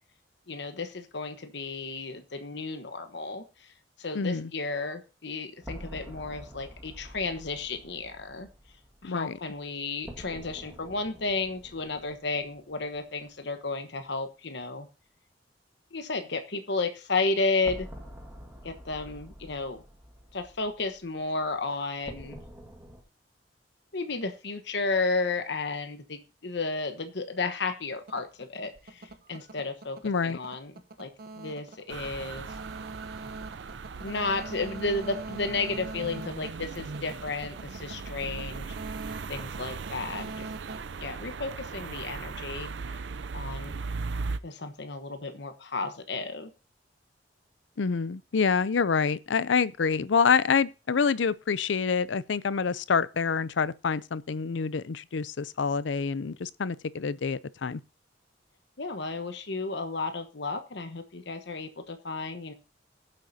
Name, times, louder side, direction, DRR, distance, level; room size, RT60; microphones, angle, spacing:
voice 1, 0.5-3.7 4.0-8.5 9.0-14.9 15.9-17.9 18.6-19.8 20.3-22.4 23.9-30.0 30.2-30.7 31.0-31.1 31.4-32.5 34.0-38.8 39.3-40.5 41.0-43.1 43.3-43.7 44.4-46.5 58.8-62.5, left 3 dB, 65° left, 1.2 m, -33 dB
voice 2, 4.1-4.5 9.0-9.4 30.0-30.4 47.8-57.8, left 5 dB, 85° left, 0.5 m, -27 dB
sound 1, 5.6-13.4 13.7-13.8 17.6-23.0, equal, 10° right, 1.8 m, -47 dB
sound 2, 27.9-41.8, right 3 dB, 55° right, 0.9 m, -43 dB
sound 3, 31.9-44.4, right 4 dB, 75° right, 0.5 m, -38 dB
20.5 x 7.6 x 2.8 m
head